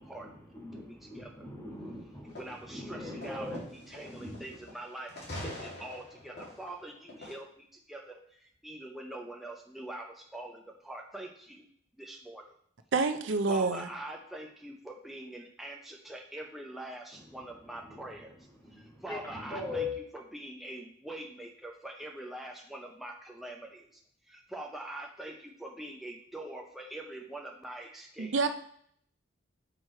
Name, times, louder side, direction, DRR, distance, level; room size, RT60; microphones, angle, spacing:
voice 1, 0.0-2.4 2.7-4.6 17.8-18.0 18.6-20.0, left 3 dB, 15° left, -4 dB, 2.2 m, -41 dB
voice 2, 0.8-1.5 2.4-11.7 12.0-12.4 13.5-18.4 18.7-19.9 20.1-24.0 24.2-28.5, right 1 dB, ahead, 0 dB, 0.6 m, -44 dB
sound 1, 2.3-2.7 3.2-4.8 5.1-7.3, left 1 dB, 55° left, 2.5 m, -44 dB
voice 3, 12.9-13.9 28.2-28.5, right 4 dB, 70° right, 8 dB, 0.6 m, -27 dB
6.2 x 4.8 x 4.3 m, 0.65 s
head